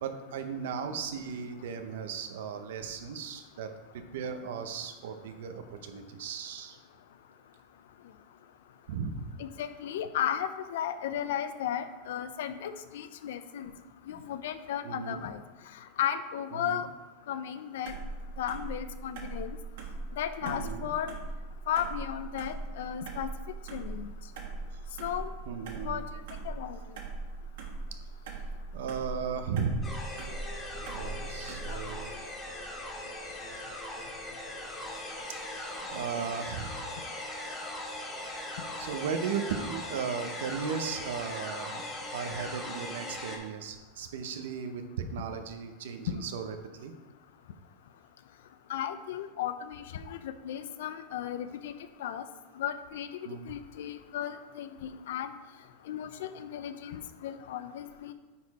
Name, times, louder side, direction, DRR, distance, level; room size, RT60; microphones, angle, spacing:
voice 1, 0.0-6.8 8.9-9.4 14.8-15.2 16.5-16.8 20.4-20.9 25.5-26.0 28.3-28.4 28.7-29.9 30.7-32.1 35.8-36.8 38.2-38.4 38.8-44.8 45.1-46.9 53.2-53.5, right 6 dB, 85° right, 7 dB, 0.9 m, -36 dB
voice 2, 9.4-13.7 14.1-15.4 16.0-16.9 17.3-17.9 18.4-19.6 20.2-21.1 21.7-23.3 23.7-24.1 25.0-25.3 25.8-26.0 26.4-26.8 31.7-31.8 46.1-46.2 48.7-51.7 52.0-52.2 52.6-53.1 53.5-55.3 55.9-58.1, left 10 dB, 80° left, 11 dB, 0.6 m, -35 dB
sound 1, 17.8-32.0, right 3 dB, 70° right, 1.5 m, -40 dB
sound 2, 29.8-43.4, left 1 dB, 15° left, 1.2 m, -39 dB
9.6 x 4.3 x 4.2 m, 1.2 s
supercardioid pair, 165°, 0 cm